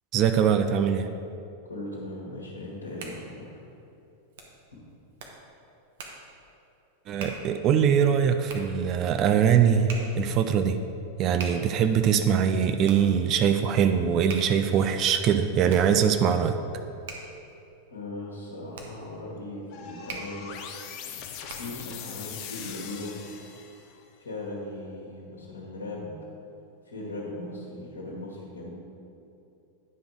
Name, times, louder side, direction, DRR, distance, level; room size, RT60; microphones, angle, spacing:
voice 1, 0.1-1.1 7.1-9.9 10.2-10.8 11.2-16.6, right 8 dB, 35° right, 8 dB, 0.4 m, -22 dB
voice 2, 1.6-3.5 17.9-20.6 20.9-23.2 24.2-26.2 26.8-28.7, left 2 dB, 70° left, -4 dB, 1.6 m, -38 dB
Hands, 2.6-21.9, right 3 dB, 55° right, 1.1 m, -45 dB
sound 1, 19.7-24.0, left 7 dB, 40° left, 0.7 m, -41 dB
10.0 x 5.1 x 4.6 m, 2.8 s
figure-of-eight pair, 90°, 0 cm